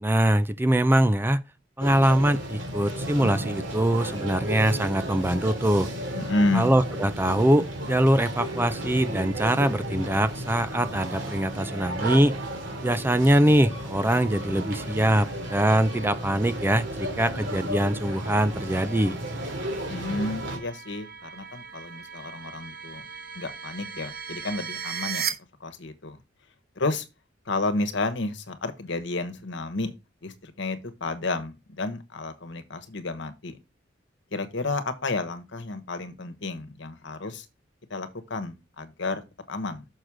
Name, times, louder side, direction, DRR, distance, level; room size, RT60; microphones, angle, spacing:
voice 1, 0.0-1.4 1.8-5.9 6.5-12.4 12.8-19.2, right 1 dB, 10° right, 0.4 m, -23 dB
sound 1, 1.8-20.6, right 1 dB, 65° right, 2.9 m, -33 dB
voice 2, 6.1-6.7 19.9-23.1 23.3-25.3 25.6-26.2 26.8-27.0 27.5-29.9 30.2-33.6 34.3-37.5 37.9-39.9, left 2 dB, 65° left, 1.2 m, -31 dB
sound 2, 14.4-25.3, right 7 dB, 50° right, 1.2 m, -39 dB
6.5 x 6.1 x 4.9 m
head